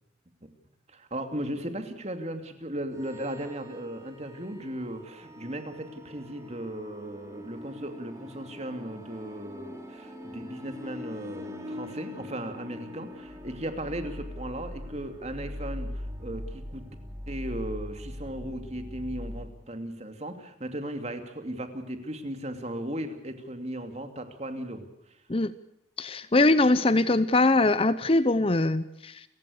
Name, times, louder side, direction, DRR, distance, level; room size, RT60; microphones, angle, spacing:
voice 1, 0.9-16.8 17.3-24.9, right 1 dB, 35° right, 7 dB, 2.7 m, -36 dB
sound 1, 2.9-19.5, left 1 dB, 15° right, 3.2 m, -41 dB
voice 2, 26.0-29.2, left 2 dB, 30° left, 14 dB, 0.7 m, -22 dB
30.0 x 16.0 x 6.6 m, 0.82 s
head